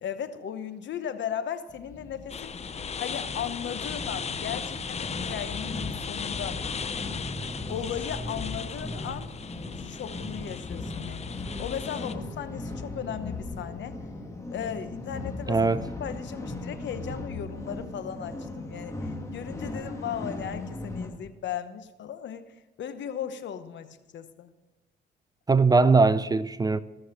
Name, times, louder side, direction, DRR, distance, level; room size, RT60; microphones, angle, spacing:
voice 1, 0.0-6.6 7.6-9.3 9.8-11.2 11.6-13.9 14.5-15.7 16.0-24.5, left 9 dB, 65° left, 1.0 m, -36 dB
sound 1, 1.7-21.2, left 2 dB, 15° left, 1.7 m, -38 dB
sound 2, 2.3-12.1, left 6 dB, 35° left, 0.6 m, -37 dB
voice 2, 15.5-15.8 25.5-26.8, right 4 dB, 20° right, 0.4 m, -20 dB
16.0 x 6.5 x 6.3 m
cardioid pair, 90°, 20 cm